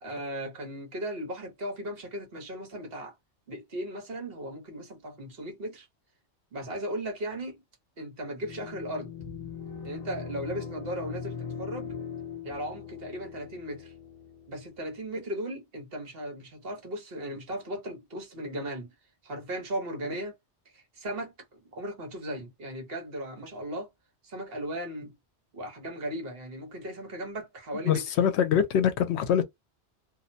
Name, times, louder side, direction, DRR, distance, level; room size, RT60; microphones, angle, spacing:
voice 1, 0.0-3.1 3.5-5.9 6.5-7.6 8.0-9.1 9.8-11.9 12.4-13.9 14.5-18.9 19.2-20.4 20.7-21.3 21.7-23.9 24.2-25.1 25.5-28.1, right 1 dB, 60° right, 1.1 m, -37 dB
sound 1, 8.4-14.8, left 6 dB, 50° left, 0.5 m, -40 dB
voice 2, 27.9-29.4, left 8 dB, 75° left, 0.8 m, -24 dB
2.5 x 2.1 x 2.6 m
omnidirectional pair, 1.2 m